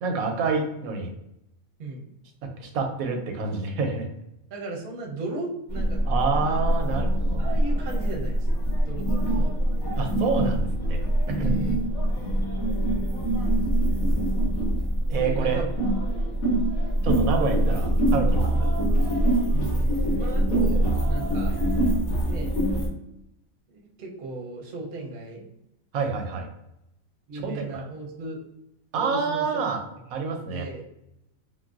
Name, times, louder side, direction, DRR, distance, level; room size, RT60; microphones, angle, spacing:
voice 1, 0.0-1.1 2.6-4.1 6.1-7.5 10.0-11.0 11.3-11.6 15.1-15.6 17.0-18.7 25.9-26.5 27.3-27.8 28.9-29.8 30.1-30.7, right 4 dB, 90° right, 4 dB, 1.1 m, -27 dB
voice 2, 4.5-6.0 6.4-6.6 6.9-7.1 7.4-9.5 11.3-12.3 15.1-15.7 16.2-16.3 19.5-21.5 22.2-22.5 23.7-25.4 27.3-28.4 28.9-29.4 30.1-30.8, right 3 dB, 50° right, 0 dB, 0.7 m, -36 dB
sound 1, 5.7-22.9, right 1 dB, 75° left, 1.3 m, -24 dB
3.8 x 2.1 x 2.4 m, 0.84 s
omnidirectional pair, 1.5 m